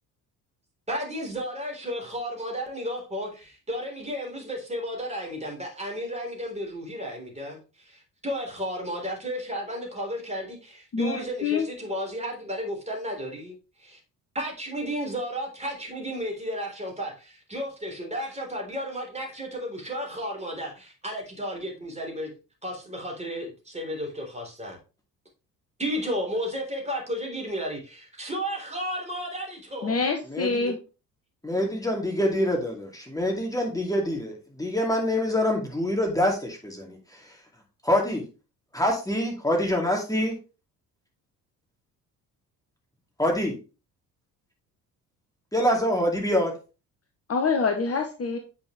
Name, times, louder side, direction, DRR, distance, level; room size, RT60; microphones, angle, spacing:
voice 1, 0.9-14.0 14.3-22.3 22.6-24.8 25.8-29.9, equal, 15° right, 3.9 m, -33 dB
voice 2, 10.9-11.7 29.8-30.8 47.3-48.4, left 4 dB, 30° left, 1.2 m, -26 dB
voice 3, 30.3-30.7 31.4-37.3 37.8-38.2 38.7-40.4 43.2-43.6 45.5-46.5, left 1 dB, 5° left, 2.4 m, -25 dB
8.6 x 5.9 x 3.3 m
figure-of-eight pair, 50°, 48 cm